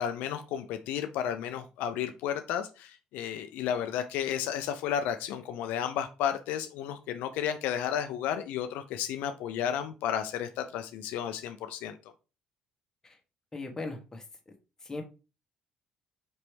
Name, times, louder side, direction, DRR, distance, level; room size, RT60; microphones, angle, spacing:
voice 1, 0.0-12.0, left 9 dB, 80° left, 8 dB, 0.4 m, -32 dB
voice 2, 13.5-14.2 14.8-15.0, left 3 dB, 20° left, 3 dB, 1.2 m, -38 dB
4.3 x 3.0 x 3.2 m, 0.31 s
supercardioid pair, 85°, 3 cm